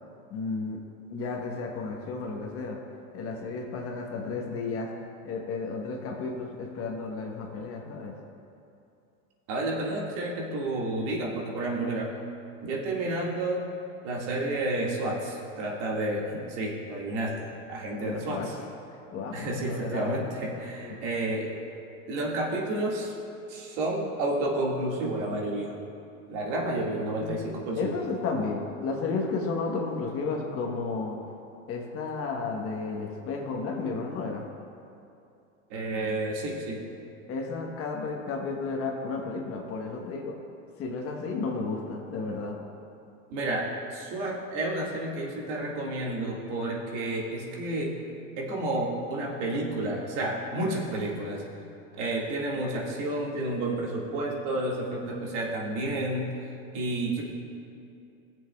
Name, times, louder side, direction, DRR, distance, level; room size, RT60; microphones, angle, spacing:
voice 1, 0.3-0.8 1.1-2.8 3.1-4.9 5.2-8.1 18.0-18.7 19.1-20.2 20.8-21.0 27.1-31.2 31.7-34.5 37.3-40.4 40.8-42.6, left 4 dB, 35° left, 0 dB, 1.1 m, -33 dB
voice 2, 9.5-12.1 12.6-13.7 14.0-18.6 19.3-21.6 22.1-23.1 23.5-25.8 26.3-27.9 35.7-36.8 43.3-47.9 48.4-51.4 52.0-56.4 56.7-57.2, right 1 dB, 55° right, -2 dB, 2.0 m, -30 dB
17.5 x 7.4 x 2.3 m, 2.6 s
hypercardioid pair, 120°, 40 cm